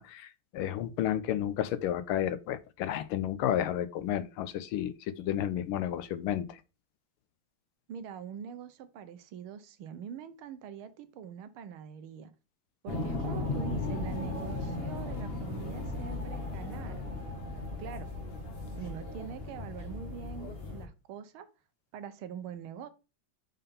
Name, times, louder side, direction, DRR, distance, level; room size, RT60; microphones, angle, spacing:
voice 1, 0.0-6.6, left 11 dB, 80° left, 1.4 m, -32 dB
voice 2, 7.9-12.3 12.8-17.0 17.8-18.1 18.8-21.5 21.9-22.9, right 8 dB, 75° right, 1.5 m, -43 dB
sound 1, 12.9-20.9, left 2 dB, 40° left, 0.9 m, -36 dB
5.6 x 3.6 x 5.3 m
omnidirectional pair, 2.4 m